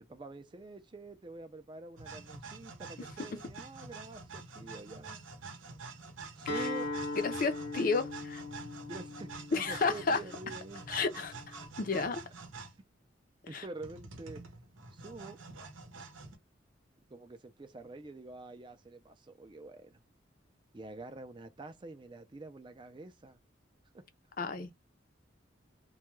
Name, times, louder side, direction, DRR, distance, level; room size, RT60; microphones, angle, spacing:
voice 1, 0.1-5.2 6.4-6.9 8.9-10.8 13.5-14.5 14.9-15.4 17.1-20.0 20.7-23.4 23.9-24.0, right 2 dB, 25° right, 0.4 m, -47 dB
sound 1, 2.0-12.8 13.8-16.4, right 4 dB, 90° right, 0.7 m, -47 dB
voice 2, 3.0-3.3 6.6-6.7 7.2-8.4 9.5-10.2 10.9-12.2 13.5-13.6 24.4-24.7, left 4 dB, 45° left, 0.5 m, -32 dB
Acoustic guitar, 6.5-11.7, left 2 dB, 80° left, 0.8 m, -40 dB
2.3 x 2.2 x 3.0 m
head